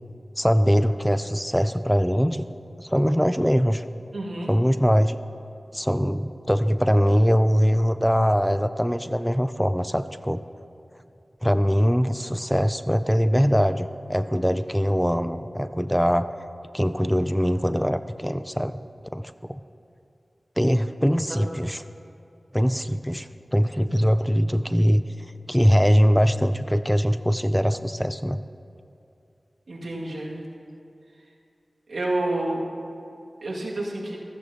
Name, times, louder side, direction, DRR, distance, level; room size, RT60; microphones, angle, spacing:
voice 1, 0.4-2.5 2.8-3.8 4.5-5.2 5.7-10.5 11.4-16.3 16.7-18.8 19.1-19.6 20.6-21.8 22.5-25.1 25.5-28.4, equal, 5° left, 12 dB, 0.4 m, -22 dB
voice 2, 4.1-4.5 21.3-21.4 29.7-30.4 31.9-32.6 33.4-34.2, right 2 dB, 80° right, -4 dB, 2.2 m, -29 dB
15.0 x 14.5 x 2.9 m, 2.6 s
cardioid pair, 40°, 0 cm